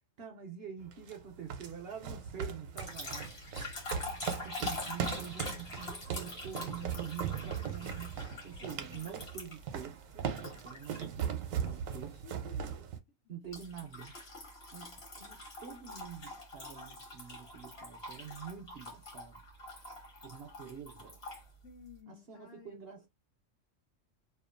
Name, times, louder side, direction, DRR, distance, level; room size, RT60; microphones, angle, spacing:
voice 1, 0.2-3.4 4.4-12.2 13.3-14.1 14.7-19.4 20.2-21.2 22.1-23.1, right 8 dB, 60° right, 0.7 m, -46 dB
sound 1, 0.8-13.0, right 7 dB, 80° right, 1.0 m, -39 dB
sound 2, 2.8-9.7 10.4-11.2 11.7-12.0 13.5-21.4, left 2 dB, 55° left, 1.4 m, -44 dB
voice 2, 6.8-7.9 8.6-9.3 12.2-12.9 21.6-23.0, left 6 dB, 70° left, 1.0 m, -55 dB
2.8 x 2.3 x 2.4 m
omnidirectional pair, 1.4 m